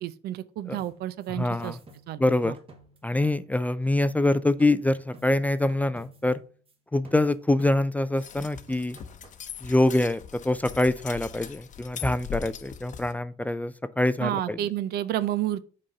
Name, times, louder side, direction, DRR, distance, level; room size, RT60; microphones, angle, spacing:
voice 1, 0.0-1.8 2.1-2.5 14.2-15.6, right 12 dB, 70° right, 0.6 m, -30 dB
sound 1, 0.8-3.8 4.0-6.7 7.0-8.1 8.4-9.5, right 1 dB, 35° right, 1.3 m, -52 dB
voice 2, 1.4-1.8 2.2-2.6 3.0-6.4 6.9-9.0 9.6-14.6, left 2 dB, 10° left, 0.3 m, -25 dB
sound 2, 8.2-13.1, left 8 dB, 45° left, 0.8 m, -41 dB
6.3 x 4.1 x 5.2 m
cardioid pair, 110°, 17 cm